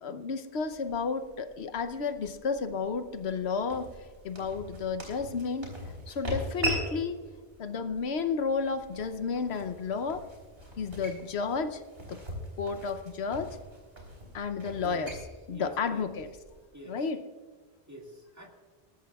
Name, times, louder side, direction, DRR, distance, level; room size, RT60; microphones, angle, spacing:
voice 1, 0.0-3.9 4.2-5.7 6.1-7.2 7.6-10.2 10.8-11.8 12.1-12.2 12.6-13.6 14.3-15.2 15.5-16.3 16.9-17.2, left 5 dB, 85° left, 9 dB, 1.1 m, -32 dB
sound 1, 0.5-16.6, right 1 dB, 70° right, 3.8 m, -41 dB
voice 2, 14.8-15.1 15.5-16.1 16.7-17.0 17.9-18.5, equal, 15° right, 0 dB, 1.9 m, -46 dB
20.0 x 13.5 x 2.4 m, 1.5 s
omnidirectional pair, 1.1 m